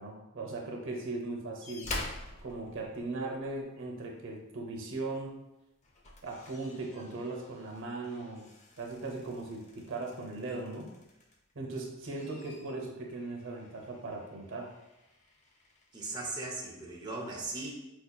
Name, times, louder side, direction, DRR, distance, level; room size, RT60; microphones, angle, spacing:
voice 1, 0.0-1.9 2.4-5.4 6.2-8.5 8.8-10.9 11.6-14.7, right 2 dB, 60° right, 0 dB, 0.6 m, -38 dB
sound 1, 1.6-3.6 5.1-5.3 5.7-11.5 11.9-16.1 17.0-17.1, left 2 dB, 35° left, 0.5 m, -47 dB
voice 2, 15.9-17.7, right 2 dB, 20° right, -3 dB, 0.5 m, -38 dB
4.5 x 2.7 x 2.2 m, 0.94 s
head